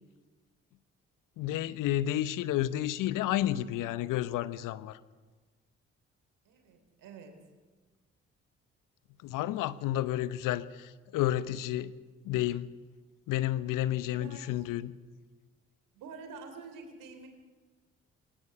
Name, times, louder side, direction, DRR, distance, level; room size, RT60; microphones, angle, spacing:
voice 1, 1.4-5.0 9.2-11.9 12.2-12.7 13.3-14.9, left 13 dB, 70° left, 16 dB, 0.9 m, -31 dB
voice 2, 6.4-7.4 14.0-14.6 15.9-17.3, right 4 dB, 70° right, 6 dB, 3.2 m, -48 dB
21.5 x 19.0 x 6.9 m, 1.3 s
hypercardioid pair, 45°, 34 cm